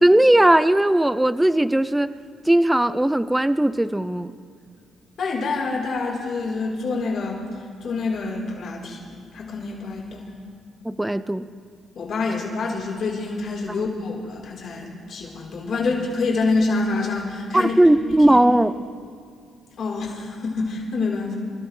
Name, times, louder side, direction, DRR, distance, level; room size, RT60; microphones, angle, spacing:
voice 1, 0.0-2.2 2.5-4.3 10.8-11.5 13.7-13.8 17.5-18.9, right 1 dB, 10° right, 13 dB, 0.5 m, -18 dB
voice 2, 5.2-7.4 7.8-10.3 12.0-17.8 18.3-18.4 19.8-21.3, left 3 dB, 65° left, -3 dB, 3.8 m, -26 dB
27.5 x 13.5 x 3.2 m, 2.2 s
cardioid pair, 90°, 0 cm